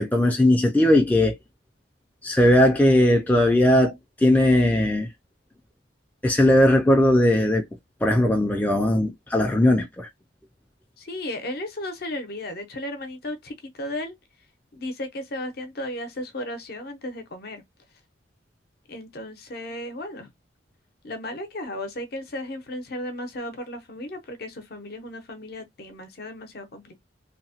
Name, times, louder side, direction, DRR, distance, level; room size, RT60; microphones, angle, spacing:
voice 1, 0.0-1.4 2.2-3.9 4.2-5.1 6.2-7.6 8.0-10.1, left 1 dB, 10° left, 0.3 m, -18 dB
voice 2, 11.0-14.2 14.7-17.6 18.9-20.3 21.0-27.0, left 1 dB, 55° left, 0.7 m, -35 dB
2.9 x 2.1 x 2.8 m
head